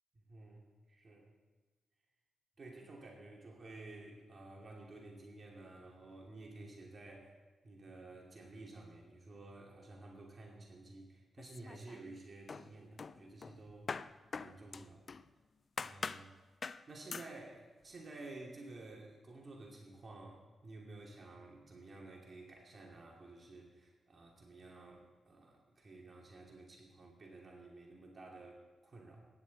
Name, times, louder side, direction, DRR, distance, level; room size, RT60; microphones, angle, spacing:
voice 1, 0.1-1.3 2.6-7.4 7.6-14.0 14.3-15.1 15.8-16.4 16.9-29.2, right 2 dB, 45° right, -1 dB, 2.7 m, -52 dB
sound 1, 11.4-12.2 12.5-15.3 15.8-16.3 16.6-16.8 17.1-17.3, left 5 dB, 50° left, 0.4 m, -44 dB
15.5 x 10.5 x 4.2 m, 1.3 s
cardioid pair, 70°, 0 cm